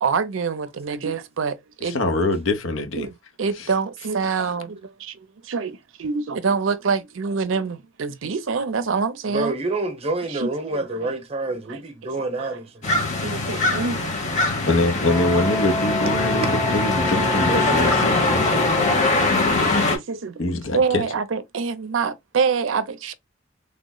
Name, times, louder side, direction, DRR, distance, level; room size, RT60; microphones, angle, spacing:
voice 1, 0.0-2.4 3.0-3.1 3.4-9.5 10.3-10.5 11.0-11.1 11.5-12.1 12.4-12.5 13.2-14.2 14.5-14.7 17.2-17.3 18.5-18.6 19.6-23.1, right 5 dB, 75° right, 0.5 m, -26 dB
voice 2, 1.9-3.1 3.6-3.7 4.2-4.5 14.7-18.5 20.4-21.0, left 2 dB, 80° left, 0.8 m, -24 dB
voice 3, 9.3-13.4 16.5-16.6, right 2 dB, 30° right, 0.8 m, -28 dB
sound 1, 12.8-20.0, left 3 dB, 40° left, 1.0 m, -22 dB
sound 2, 15.0-18.7, left 1 dB, 5° right, 0.4 m, -26 dB
3.3 x 2.0 x 3.7 m
head